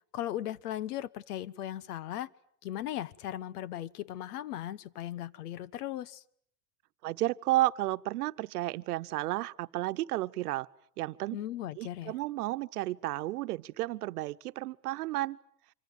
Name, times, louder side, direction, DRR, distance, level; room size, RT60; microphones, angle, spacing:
voice 1, 0.1-2.3 2.6-6.2 11.3-12.1, left 12 dB, 90° left, 1.2 m, -37 dB
voice 2, 7.0-10.7 11.0-11.4 11.8-15.4, right 17 dB, 85° right, 1.1 m, -32 dB
26.0 x 24.5 x 9.2 m
supercardioid pair, 180°, 44 cm